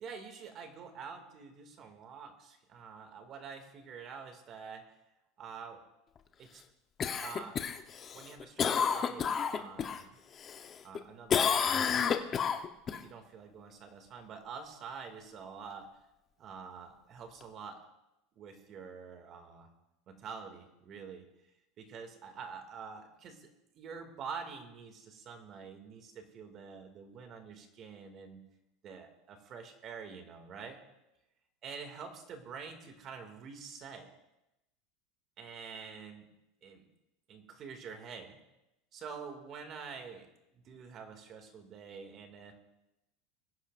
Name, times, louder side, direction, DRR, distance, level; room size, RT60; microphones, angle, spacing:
voice 1, 0.0-4.8 5.4-5.8 6.4-6.6 7.2-7.6 8.1-10.2 10.8-12.4 12.9-15.9 16.4-17.8 18.4-19.7 20.1-21.3 21.8-23.5 23.7-28.4 28.8-30.8 31.6-34.1 35.4-36.3 36.6-36.9 37.3-38.4 38.9-40.3 40.5-42.5, right 6 dB, 40° right, 5 dB, 2.2 m, -47 dB
Cough, 7.0-10.0 10.4-11.0 11.3-13.0 17.4-17.5, left 7 dB, 30° left, 0.9 m, -30 dB
22.0 x 10.0 x 2.5 m, 0.91 s
supercardioid pair, 120°, 0 cm